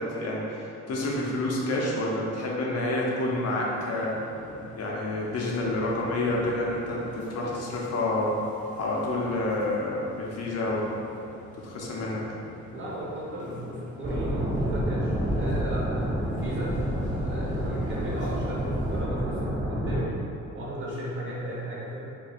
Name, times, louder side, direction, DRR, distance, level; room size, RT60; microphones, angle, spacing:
voice 1, 0.0-4.2 4.7-8.4 8.8-10.9 11.6-12.2, left 2 dB, 55° left, -3 dB, 0.7 m, -28 dB
sound 1, 3.2-19.0, left 1 dB, 25° left, 0.7 m, -46 dB
voice 2, 12.7-16.8 17.2-20.1 20.4-22.0, right 1 dB, 40° right, -5 dB, 1.0 m, -35 dB
sound 2, 14.0-20.0, equal, 10° right, 0.6 m, -28 dB
3.9 x 2.7 x 2.4 m, 2.7 s
cardioid pair, 90°, 30 cm